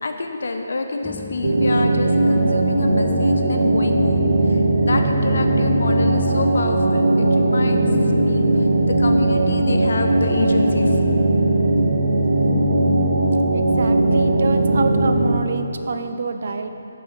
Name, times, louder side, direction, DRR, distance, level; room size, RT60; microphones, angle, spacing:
voice 1, 0.0-7.9 8.2-11.0, left 3 dB, 70° left, 4 dB, 1.0 m, -27 dB
sound 1, 1.0-15.4, left 7 dB, 10° left, 0.3 m, -35 dB
sound 2, 1.4-15.4, right 2 dB, 75° right, 1.5 m, -18 dB
voice 2, 13.5-16.7, right 4 dB, 60° right, 7 dB, 0.7 m, -26 dB
11.0 x 4.8 x 8.0 m, 2.9 s
hypercardioid pair, 160°, 0 cm